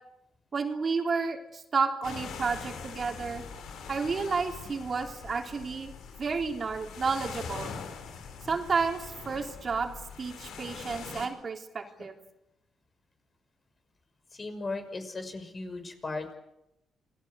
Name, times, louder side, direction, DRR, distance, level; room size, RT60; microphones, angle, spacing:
voice 1, 0.5-3.4 3.9-5.9 6.2-7.7 8.5-12.2, right 4 dB, 45° right, 3 dB, 3.7 m, -31 dB
sound 1, 2.0-11.3, left 5 dB, 90° left, 5.4 m, -43 dB
voice 2, 14.3-16.3, left 3 dB, 35° left, 8 dB, 5.9 m, -37 dB
28.5 x 20.0 x 8.3 m, 0.87 s
cardioid pair, 95°, 0 cm